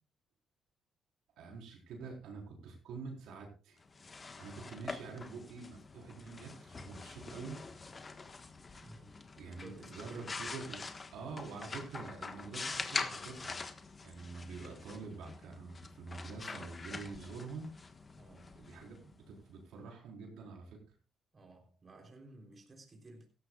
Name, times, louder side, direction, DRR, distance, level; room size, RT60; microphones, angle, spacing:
voice 1, 1.4-3.8 4.4-7.6 9.4-10.9 11.1-13.7 14.0-17.7 18.6-21.0, right 4 dB, 85° right, 4.2 m, -46 dB
sound 1, 3.8-19.5, left 4 dB, 30° left, 1.4 m, -45 dB
voice 2, 8.8-9.2 9.4-10.4 18.2-18.7 21.3-23.3, right 2 dB, 35° right, 3.6 m, -55 dB
16.5 x 14.0 x 2.4 m
cardioid pair, 90°, 0 cm